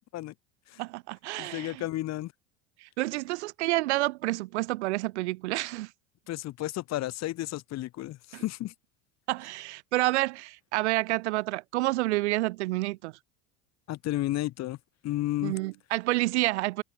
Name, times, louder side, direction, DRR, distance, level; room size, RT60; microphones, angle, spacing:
voice 1, 0.8-1.8 2.8-5.9 8.3-8.4 9.3-13.1 15.4-16.8, right 19 dB, 90° right, 1.2 m, -29 dB
voice 2, 1.4-2.3 6.3-8.7 13.9-14.8 15.0-15.5, left 15 dB, 50° left, 2.3 m, -32 dB
supercardioid pair, 105°, 33 cm